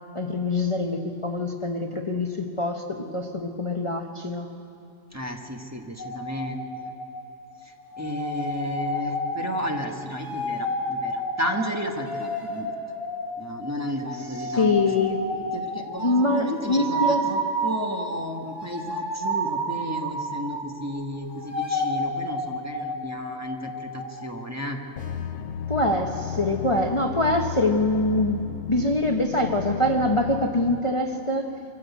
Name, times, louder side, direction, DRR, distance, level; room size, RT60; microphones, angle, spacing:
voice 1, 0.1-4.5 14.5-15.4 16.0-17.3 25.7-28.4 28.7-31.5, left 2 dB, 25° left, 2 dB, 1.0 m, -24 dB
voice 2, 5.1-6.9 7.6-12.7 13.4-14.8 15.3-24.8, equal, 15° right, 1 dB, 1.3 m, -33 dB
sound 1, 6.0-7.5 7.8-20.9 21.2-24.2, equal, 65° right, 3.2 m, -31 dB
sound 2, 25.0-30.8, left 9 dB, 80° left, 1.1 m, -34 dB
24.5 x 15.0 x 8.3 m, 2.8 s
omnidirectional pair, 1.3 m